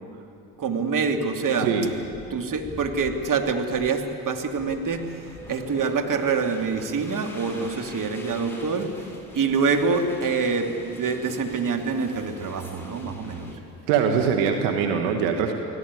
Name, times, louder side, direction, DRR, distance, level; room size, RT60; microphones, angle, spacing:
voice 1, 0.6-1.7 2.3-5.0 5.5-8.9 9.3-13.5, right 5 dB, 45° right, 4 dB, 2.8 m, -25 dB
voice 2, 1.6-1.9 13.9-15.5, right 7 dB, 80° right, 4 dB, 1.9 m, -22 dB
sound 1, 1.9-13.6, left 1 dB, 5° left, 7.5 m, -43 dB
24.5 x 17.0 x 9.7 m, 2.6 s
hypercardioid pair, 65°, 44 cm